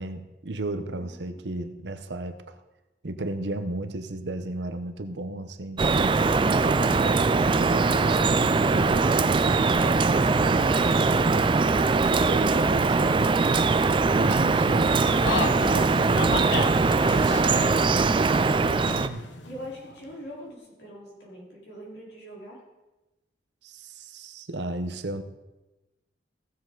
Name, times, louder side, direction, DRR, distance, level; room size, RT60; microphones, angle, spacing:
voice 1, 0.0-2.6 3.0-6.2 6.6-11.6 12.1-13.4 14.1-15.4 16.1-16.9 18.7-19.3 23.6-25.2, right 2 dB, 75° right, 9 dB, 0.8 m, -34 dB
voice 2, 0.9-1.4 19.4-22.6, equal, 65° left, -4 dB, 4.0 m, -43 dB
Drip, 5.8-19.1, right 3 dB, 30° right, 0.4 m, -21 dB
sound 1, 15.1-20.1, left 3 dB, 90° left, 1.0 m, -33 dB
15.5 x 7.4 x 3.9 m, 1.0 s
head